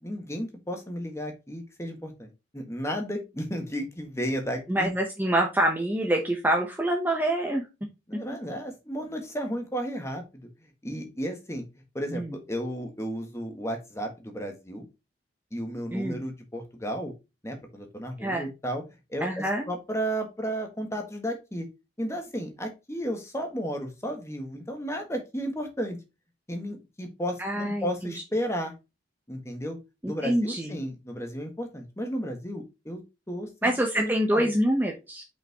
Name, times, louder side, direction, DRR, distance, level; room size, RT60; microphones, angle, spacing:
voice 1, 0.0-2.3 2.5-4.9 8.1-10.5 10.8-11.6 11.9-14.8 15.5-17.1 17.4-18.8 19.1-21.7 22.0-26.0 26.5-28.7 29.3-29.8 30.1-33.0 33.3-34.5, equal, 15° left, 4 dB, 1.5 m, -33 dB
voice 2, 4.7-7.7 8.1-8.2 12.1-12.4 15.9-16.2 18.2-18.5 19.2-19.7 27.4-28.1 30.0-30.8 33.6-35.3, right 1 dB, 10° right, 1 dB, 1.0 m, -26 dB
5.8 x 5.5 x 3.0 m, 0.25 s
head